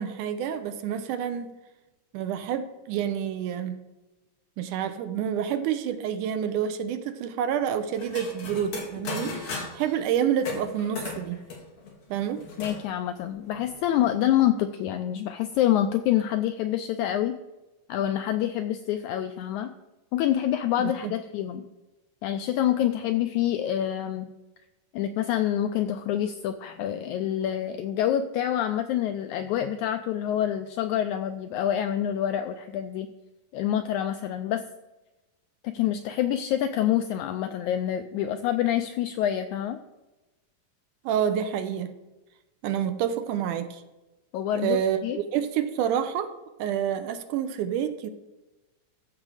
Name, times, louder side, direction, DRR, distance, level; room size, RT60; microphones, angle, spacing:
voice 1, 0.0-1.5 2.1-3.8 4.6-11.4 12.1-12.4 20.8-21.1 41.1-41.9 42.6-43.8 44.5-46.3 46.6-48.1, right 9 dB, 80° right, 10 dB, 2.0 m, -28 dB
sound 1, 8.0-9.9 10.4-12.8 13.2-13.3 13.5-14.1, left 3 dB, 55° left, 3.0 m, -37 dB
voice 2, 12.6-17.4 17.9-19.7 20.1-21.6 22.2-24.3 24.9-33.1 33.5-34.6 35.7-39.8 44.3-44.8 45.0-45.2, left 11 dB, 85° left, 8 dB, 1.7 m, -26 dB
14.0 x 6.1 x 4.9 m, 1.1 s
omnidirectional pair, 3.9 m